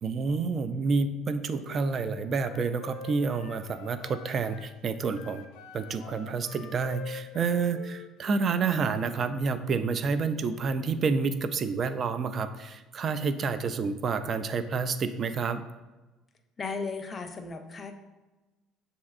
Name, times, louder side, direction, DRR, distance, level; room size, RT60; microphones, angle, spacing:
voice 1, 0.0-5.4 5.7-15.6, right 4 dB, 45° right, 11 dB, 0.3 m, -29 dB
Wind instrument woodwind instrument, 1.5-4.7 5.1-8.5, left 7 dB, 80° left, 0.4 m, -46 dB
voice 2, 16.6-17.9, left 4 dB, 30° left, 6 dB, 0.5 m, -35 dB
6.7 x 2.6 x 2.5 m, 1.1 s
supercardioid pair, 90°, 0 cm